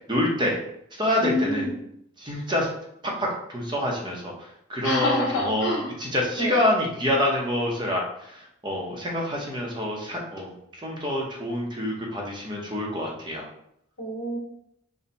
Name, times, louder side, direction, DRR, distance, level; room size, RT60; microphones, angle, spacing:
voice 1, 0.1-0.6 1.0-1.7 2.2-2.7 3.0-5.7 6.0-13.4, left 1 dB, 20° right, -1 dB, 0.7 m, -27 dB
voice 2, 1.2-1.7 4.8-5.9 6.4-6.6 14.0-14.4, left 1 dB, 65° left, -3 dB, 1.3 m, -27 dB
4.2 x 2.2 x 4.0 m, 0.74 s
head